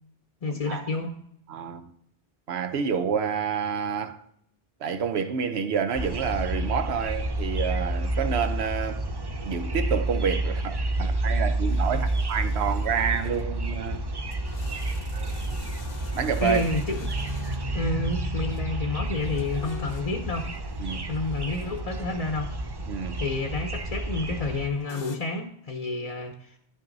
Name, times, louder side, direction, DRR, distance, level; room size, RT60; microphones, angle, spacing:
voice 1, 0.4-1.1 16.4-17.1 17.7-20.5 21.1-22.5 23.2-26.6, left 3 dB, 40° left, 0.8 m, -29 dB
voice 2, 1.5-1.9 2.5-4.2 4.8-9.1 9.4-14.0 15.1-15.6 16.1-16.6 20.8-21.1 22.9-23.2, right 7 dB, 80° right, 1.0 m, -28 dB
sound 1, 6.0-24.7, right 1 dB, 30° right, 0.5 m, -30 dB
sound 2, 11.7-25.2, left 6 dB, 65° left, 1.0 m, -49 dB
10.5 x 6.1 x 3.9 m
omnidirectional pair, 1.1 m